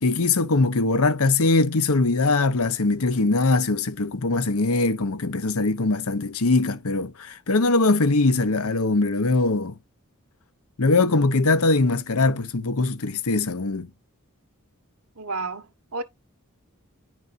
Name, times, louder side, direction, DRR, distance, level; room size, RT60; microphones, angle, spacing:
voice 1, 0.0-9.7 10.8-13.9, left 3 dB, 90° left, 0.9 m, -21 dB
voice 2, 15.1-16.0, right 3 dB, 85° right, 1.4 m, -32 dB
10.5 x 6.2 x 2.6 m
head